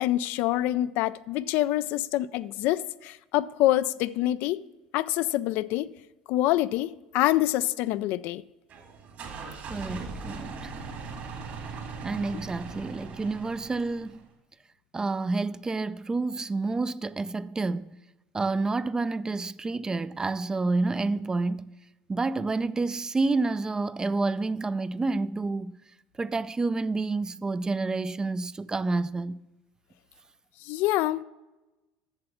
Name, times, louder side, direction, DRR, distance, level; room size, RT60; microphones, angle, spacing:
voice 1, 0.0-4.6 4.9-5.9 6.3-8.4 30.6-31.2, left 15 dB, 65° left, 0.3 m, -26 dB
sound 1, 8.7-14.3, right 4 dB, 55° right, 2.2 m, -40 dB
voice 2, 9.7-10.7 12.0-14.2 14.9-17.9 18.3-21.7 22.1-25.8 26.2-29.4, right 3 dB, 20° right, 0.4 m, -29 dB
7.8 x 6.8 x 5.9 m
hypercardioid pair, 85°, 3 cm